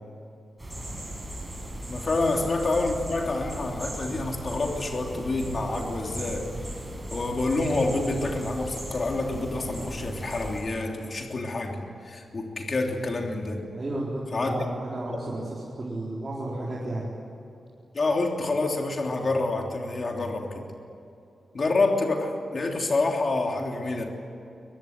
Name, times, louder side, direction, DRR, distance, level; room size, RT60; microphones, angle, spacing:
sound 1, 0.6-10.6, right 1 dB, 10° right, 6.6 m, -37 dB
voice 1, 1.9-6.5 7.1-11.8 12.0-13.6 14.3-14.5 15.1-15.2 17.9-20.7 21.5-24.0, left 2 dB, 35° left, 1 dB, 3.2 m, -27 dB
voice 2, 13.7-17.1, right 1 dB, 30° right, -5 dB, 4.3 m, -33 dB
23.0 x 22.0 x 9.5 m, 2.7 s
wide cardioid pair, 170°, 0 cm